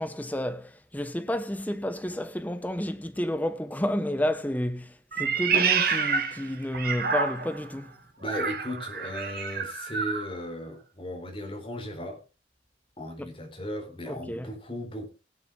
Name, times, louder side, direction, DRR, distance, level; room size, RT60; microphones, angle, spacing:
voice 1, 0.0-7.9 14.1-14.5, left 1 dB, 10° left, 0.6 m, -31 dB
Meow, 5.1-7.7 8.2-10.3, right 6 dB, 50° right, 1.7 m, -28 dB
voice 2, 8.2-12.2 13.0-15.1, equal, 30° left, 3.9 m, -36 dB
17.5 x 8.7 x 3.7 m
head